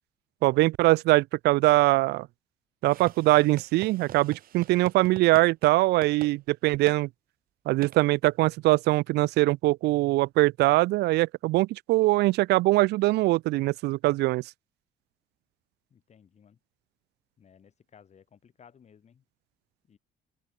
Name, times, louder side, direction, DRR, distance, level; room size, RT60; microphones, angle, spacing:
voice 1, 0.4-2.3 2.8-7.1 7.7-14.4, right 19 dB, 80° right, 0.6 m, -22 dB
sound 1, 2.9-5.7 6.0-6.3 6.9-7.0 7.8-8.0, right 12 dB, 60° right, 1.4 m, -44 dB
voice 2, 15.9-16.6 17.4-19.2 19.9-20.0, left 7 dB, 40° left, 6.4 m, -57 dB
open air
cardioid pair, 110°, 17 cm